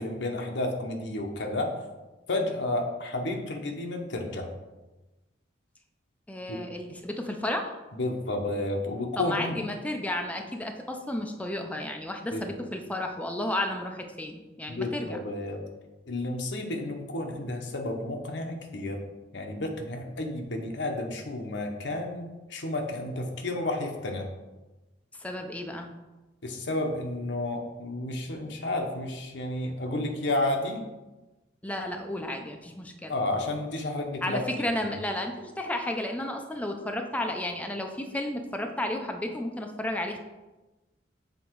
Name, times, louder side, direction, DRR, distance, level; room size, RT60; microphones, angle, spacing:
voice 1, 0.0-1.7 2.3-4.5 6.5-6.6 7.9-9.6 12.3-12.5 14.7-15.6 16.1-19.0 19.3-24.3 26.4-30.8 33.1-34.4 34.8-35.0, left 2 dB, 65° left, 3 dB, 0.9 m, -31 dB
voice 2, 6.3-7.8 9.2-15.2 25.2-25.9 31.6-33.1 34.2-40.2, left 1 dB, 10° left, 3 dB, 0.5 m, -32 dB
7.0 x 3.6 x 4.6 m, 1.1 s
head